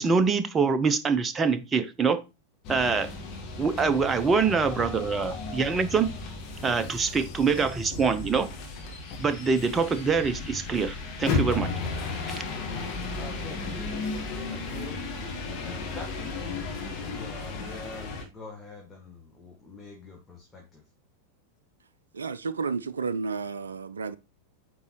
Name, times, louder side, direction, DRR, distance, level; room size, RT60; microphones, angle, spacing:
voice 1, 0.0-2.2 2.7-3.1 3.6-6.1 6.6-8.5 9.2-11.7 12.3-12.4, right 5 dB, 20° right, 0.6 m, -25 dB
sound 1, 2.6-18.2, left 3 dB, 40° left, 1.7 m, -34 dB
voice 2, 13.1-15.0 15.5-20.8, left 2 dB, 10° left, 1.7 m, -45 dB
voice 3, 22.1-24.2, right 5 dB, 70° right, 0.3 m, -31 dB
9.1 x 3.9 x 3.1 m
figure-of-eight pair, 90°, 0 cm